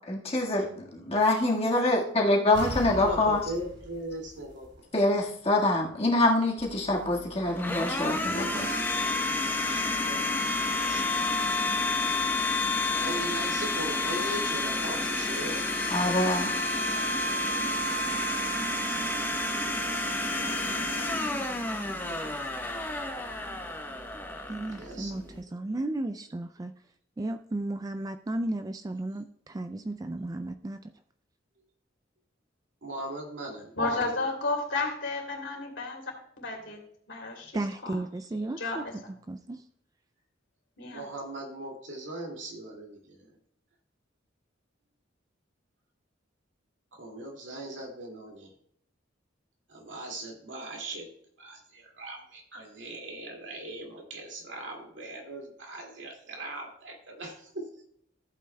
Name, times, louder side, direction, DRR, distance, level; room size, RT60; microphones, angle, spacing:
voice 1, 0.1-3.4 4.9-8.7 15.9-16.5, left 2 dB, 35° left, -1 dB, 1.7 m, -25 dB
sound 1, 2.5-5.2 5.5-5.6, equal, 90° right, 4.6 m, -40 dB
voice 2, 2.9-4.7 9.7-11.2 13.0-15.7 20.2-21.3 24.7-25.6 32.8-33.7 34.0-34.1 40.8-43.3 46.9-48.5 49.7-51.1 51.4-57.6, right 1 dB, 70° right, 1 dB, 2.3 m, -40 dB
Domestic sounds home sounds, 6.6-25.4, left 2 dB, 10° left, 1.0 m, -30 dB
voice 3, 24.5-26.7 27.2-30.8 37.5-39.6, right 2 dB, 20° right, 9 dB, 0.3 m, -34 dB
voice 4, 33.8-36.0 36.4-36.8 37.1-37.9 38.6-38.8 40.8-41.0, left 3 dB, 75° left, 1 dB, 2.9 m, -32 dB
14.5 x 8.5 x 2.2 m, 0.68 s
head